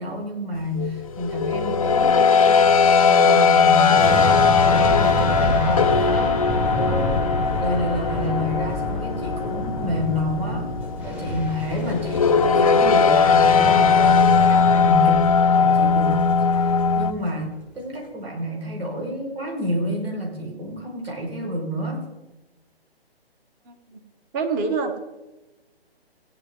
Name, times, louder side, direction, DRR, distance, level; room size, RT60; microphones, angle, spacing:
voice 1, 0.0-2.6 3.0-6.5 6.8-7.2 7.6-10.7 11.0-16.2 16.5-22.1, left 1 dB, 70° right, -2 dB, 5.3 m, -29 dB
sound 1, 0.7-17.1, left 5 dB, 35° left, 0.5 m, -19 dB
sound 2, 3.9-17.1 17.4-17.5, equal, 5° right, 1.2 m, -29 dB
voice 2, 23.6-24.0 24.3-25.0, right 4 dB, 20° right, 4 dB, 1.3 m, -26 dB
17.0 x 10.0 x 3.8 m, 1.1 s
figure-of-eight pair, 135°, 31 cm